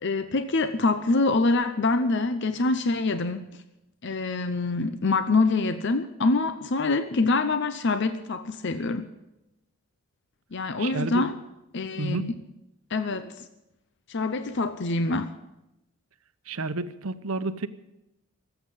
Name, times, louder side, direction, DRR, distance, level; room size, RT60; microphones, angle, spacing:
voice 1, 0.0-3.4 4.0-9.1 10.5-11.3 11.7-12.3 12.9-13.5 14.1-15.3, left 3 dB, 50° left, 10 dB, 0.6 m, -25 dB
voice 2, 10.8-11.3 12.0-12.4 16.5-17.7, right 2 dB, 75° right, 11 dB, 0.8 m, -30 dB
18.5 x 8.1 x 8.1 m, 0.93 s
head